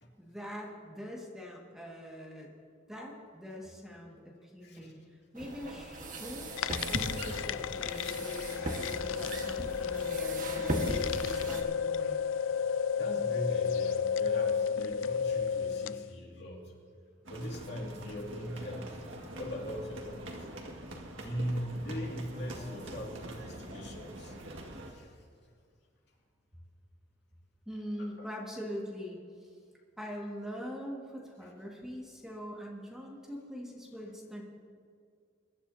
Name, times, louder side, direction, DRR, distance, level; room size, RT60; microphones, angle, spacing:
voice 1, 0.2-2.5 2.9-12.2 27.7-29.5 30.0-34.4, equal, 5° right, -3 dB, 1.9 m, -43 dB
voice 2, 4.6-4.9 12.0-12.5 13.0-16.7 17.3-19.0 19.4-20.5 21.2-25.2 28.0-28.3, equal, 60° left, -1 dB, 2.3 m, -40 dB
sound 1, 5.3-11.6, right 1 dB, 45° right, 1.5 m, -38 dB
sound 2, 6.5-16.1, left 7 dB, 85° left, 0.4 m, -32 dB
sound 3, 17.2-24.9, right 1 dB, 85° right, 1.8 m, -45 dB
23.0 x 12.0 x 2.8 m, 2.2 s
head